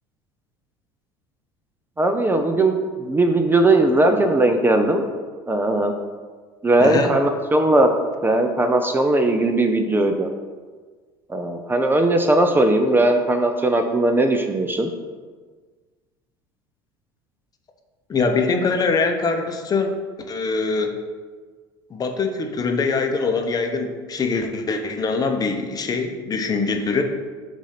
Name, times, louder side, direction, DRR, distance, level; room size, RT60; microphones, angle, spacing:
voice 1, 2.0-5.0 5.5-5.9 6.6-7.9 8.2-10.3 11.3-14.9, right 2 dB, 15° right, 5 dB, 0.5 m, -19 dB
voice 2, 6.8-7.1 18.1-19.9 20.3-20.9 21.9-27.0, left 4 dB, 30° left, 4 dB, 0.8 m, -23 dB
7.0 x 2.7 x 5.8 m, 1.5 s
hypercardioid pair, 80°, 12 cm